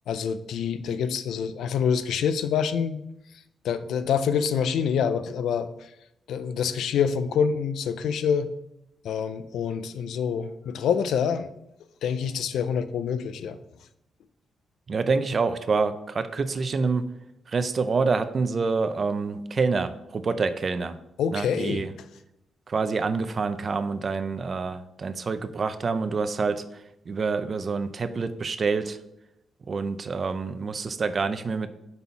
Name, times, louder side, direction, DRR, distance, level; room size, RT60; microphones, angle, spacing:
voice 1, 0.1-3.0 3.6-5.9 6.3-8.5 9.0-11.5 12.0-13.6 21.2-21.8, left 7 dB, 85° left, 11 dB, 0.4 m, -26 dB
voice 2, 14.9-17.1 17.5-21.0 21.3-21.9 22.7-29.0 29.7-31.7, right 4 dB, 40° right, 11 dB, 0.4 m, -27 dB
5.4 x 4.1 x 4.4 m, 0.83 s
cardioid pair, 105°, 0 cm